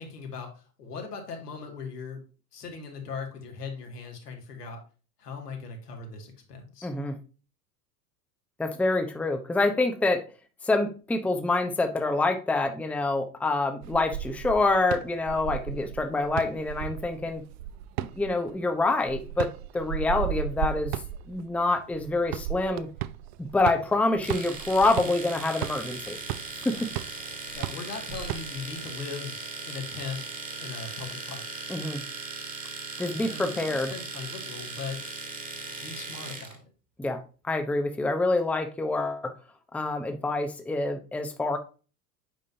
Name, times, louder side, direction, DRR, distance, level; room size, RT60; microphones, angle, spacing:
voice 1, 0.0-2.2 2.5-4.8 5.2-6.9 15.6-15.9 26.7-26.9 27.5-30.2 30.6-31.5 33.1-35.0 35.8-36.7, left 5 dB, 75° left, 2 dB, 2.2 m, -39 dB
voice 2, 6.8-7.1 8.6-10.2 10.6-17.4 18.0-19.5 19.7-20.9 21.3-22.9 23.4-26.2 26.6-26.7 31.7-32.0 33.0-33.9 37.0-37.2 37.5-39.2 39.7-41.6, left 2 dB, 5° left, 6 dB, 0.8 m, -26 dB
sound 1, 13.8-28.8, right 11 dB, 45° right, 0.5 m, -35 dB
Domestic sounds home sounds, 24.2-36.6, right 3 dB, 15° right, 1.8 m, -38 dB
8.8 x 5.3 x 2.7 m, 0.35 s
figure-of-eight pair, 80°, 48 cm